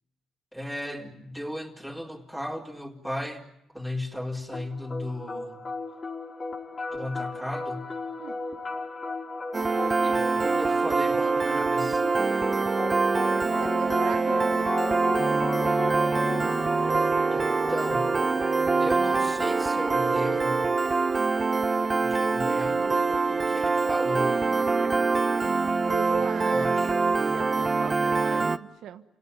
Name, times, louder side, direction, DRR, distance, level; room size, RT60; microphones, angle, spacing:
voice 1, 0.5-3.4 3.7-5.6 6.9-7.9 10.0-12.0 17.3-18.2 18.8-20.7 21.9-24.3 25.8-25.9 26.4-26.9, left 1 dB, ahead, 2 dB, 4.5 m, -35 dB
sound 1, 4.5-20.5, left 3 dB, 35° left, 5.3 m, -36 dB
Piano, 9.5-28.6, right 4 dB, 30° right, 1.0 m, -24 dB
voice 2, 13.3-15.3 25.9-27.0 27.3-29.0, right 10 dB, 80° right, 9 dB, 1.4 m, -39 dB
29.0 x 18.0 x 9.9 m, 0.82 s
cardioid pair, 90°, 0 cm